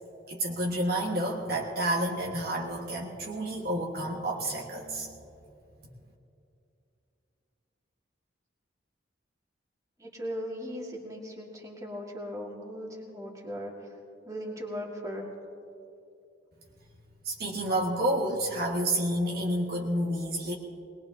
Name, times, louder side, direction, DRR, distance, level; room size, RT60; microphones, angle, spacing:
voice 1, 0.3-5.1 17.2-20.5, right 1 dB, 55° right, -1 dB, 1.4 m, -29 dB
voice 2, 10.0-13.9 14.2-15.3, equal, 15° right, -1 dB, 1.9 m, -38 dB
21.5 x 20.0 x 2.8 m, 2.7 s
head